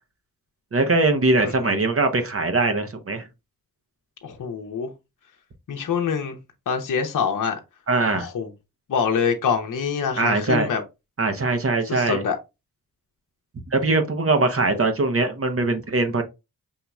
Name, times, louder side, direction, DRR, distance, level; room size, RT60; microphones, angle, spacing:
voice 1, 0.7-3.3 7.9-8.3 10.2-10.7 11.2-12.2 13.7-16.2, right 3 dB, 40° right, 0.8 m, -21 dB
voice 2, 1.4-1.7 4.2-4.9 5.7-6.4 6.7-7.6 8.1-8.5 8.9-10.8 11.9-12.4, left 6 dB, 55° left, 0.8 m, -25 dB
5.5 x 2.9 x 2.3 m
supercardioid pair, 45°, 37 cm